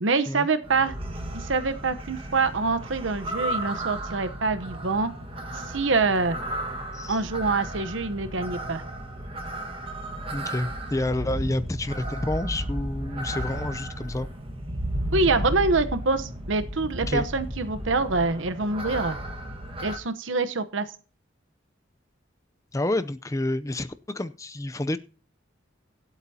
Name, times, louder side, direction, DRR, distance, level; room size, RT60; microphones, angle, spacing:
voice 1, 0.0-0.9 1.3-5.1 5.7-6.4 7.1-8.8 15.1-19.2 19.8-20.9, right 3 dB, 80° right, 0.9 m, -25 dB
sound 1, 0.6-20.0, right 1 dB, 30° right, 1.5 m, -34 dB
voice 2, 10.3-14.3 17.1-17.2 22.7-25.0, left 1 dB, 15° left, 0.5 m, -29 dB
24.0 x 8.2 x 2.8 m
head